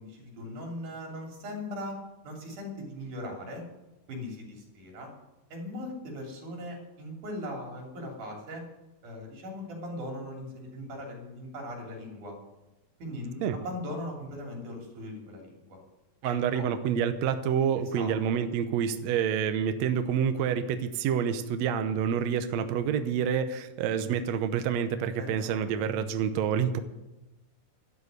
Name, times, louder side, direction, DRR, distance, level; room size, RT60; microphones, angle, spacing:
voice 1, 0.0-2.0 2.2-3.6 4.1-5.1 5.5-8.6 9.0-12.3 13.0-15.8 16.2-16.7 17.9-18.1 25.2-25.6, left 1 dB, 60° right, 0 dB, 4.5 m, -39 dB
voice 2, 16.2-26.8, right 8 dB, 80° right, 9 dB, 1.5 m, -28 dB
11.5 x 8.1 x 9.5 m, 1.0 s
omnidirectional pair, 4.2 m